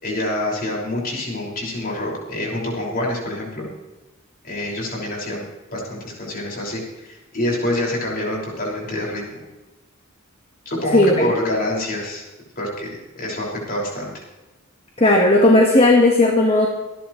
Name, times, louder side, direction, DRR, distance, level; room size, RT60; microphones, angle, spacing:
voice 1, 0.0-3.7 4.4-5.5 5.7-9.4 10.7-12.2 12.6-14.2, left 1 dB, 45° left, -3 dB, 5.7 m, -26 dB
voice 2, 10.9-11.3 15.0-16.7, left 2 dB, 30° left, 0 dB, 1.6 m, -14 dB
26.5 x 11.0 x 3.2 m, 1.1 s
head